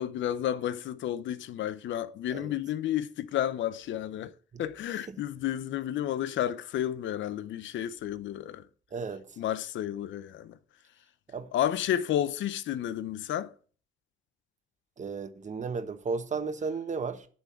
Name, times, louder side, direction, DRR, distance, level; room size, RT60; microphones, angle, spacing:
voice 1, 0.0-4.3 4.6-8.7 9.4-10.6 11.5-13.5, left 11 dB, 70° left, 0.6 m, -31 dB
voice 2, 8.9-9.4 11.3-11.5 15.0-17.3, right 4 dB, 35° right, 1.2 m, -34 dB
10.0 x 3.9 x 7.4 m
cardioid pair, 90°, 20 cm